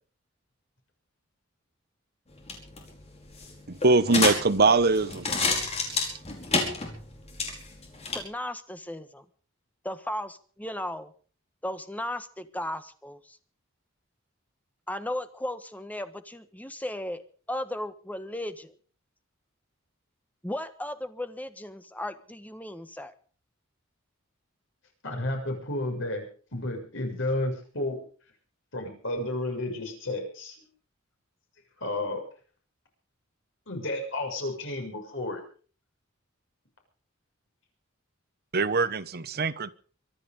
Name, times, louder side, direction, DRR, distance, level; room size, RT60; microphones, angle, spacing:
sound 1, 2.3-8.2, left 3 dB, 30° left, 5.1 m, -30 dB
voice 1, 3.7-5.3 5.9-6.0 38.5-39.7, right 3 dB, 50° right, 1.0 m, -23 dB
voice 2, 8.1-9.2 9.8-11.1 11.6-13.4 14.9-17.2 17.5-18.7 20.4-23.1, left 1 dB, 10° left, 1.3 m, -35 dB
voice 3, 25.0-26.3 26.5-28.0 28.7-30.7 31.8-32.2 33.7-35.4, left 1 dB, 65° left, 6.7 m, -32 dB
24.5 x 10.5 x 5.3 m
head